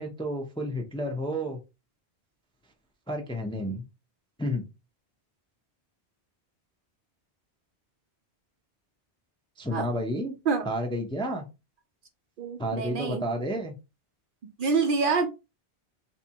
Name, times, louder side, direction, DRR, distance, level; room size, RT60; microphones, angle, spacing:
voice 1, 0.0-1.6 3.1-3.8 4.4-4.6 9.6-10.3 10.7-11.5 12.6-13.8, equal, 5° left, 3 dB, 0.4 m, -31 dB
voice 2, 12.4-13.2 14.6-15.3, right 4 dB, 60° right, 7 dB, 0.7 m, -26 dB
3.4 x 2.8 x 2.8 m, 0.26 s
omnidirectional pair, 1.1 m